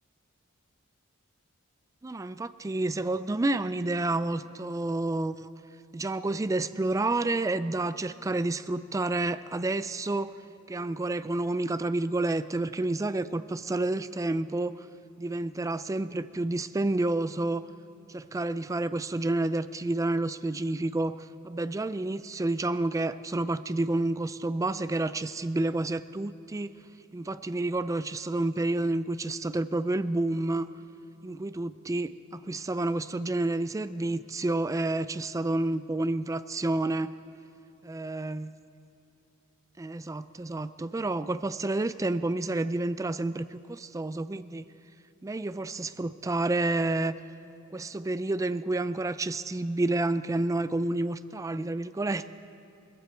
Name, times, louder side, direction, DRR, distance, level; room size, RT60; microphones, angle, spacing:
voice 1, 2.0-5.5 5.9-10.3 10.7-14.9 15.2-17.7 18.1-26.7 27.1-30.7 31.2-37.1 37.8-38.5 39.8-44.7 45.2-47.1 47.7-52.3, right 2 dB, 15° right, 14 dB, 0.3 m, -29 dB
20.5 x 15.0 x 4.5 m, 2.8 s
head